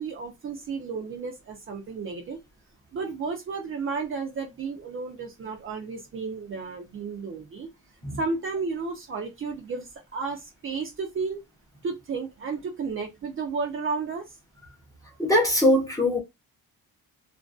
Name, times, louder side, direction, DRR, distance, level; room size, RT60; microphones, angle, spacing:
voice 1, 0.0-2.4 2.9-7.7 8.2-11.4 11.8-14.3, right 4 dB, 35° right, 0.5 m, -32 dB
voice 2, 15.2-16.2, left 1 dB, 10° left, 0.6 m, -21 dB
2.5 x 2.1 x 2.3 m
cardioid pair, 150°, 35 cm